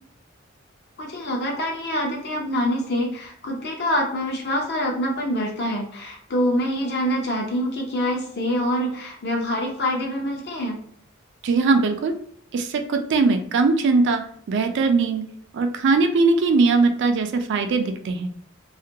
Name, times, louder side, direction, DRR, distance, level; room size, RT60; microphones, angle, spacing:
voice 1, 1.0-10.8, equal, 55° left, 0 dB, 0.7 m, -25 dB
voice 2, 11.4-12.1 12.5-15.2 15.5-18.3, right 3 dB, 60° right, 7 dB, 0.4 m, -20 dB
2.5 x 2.2 x 2.7 m, 0.63 s
head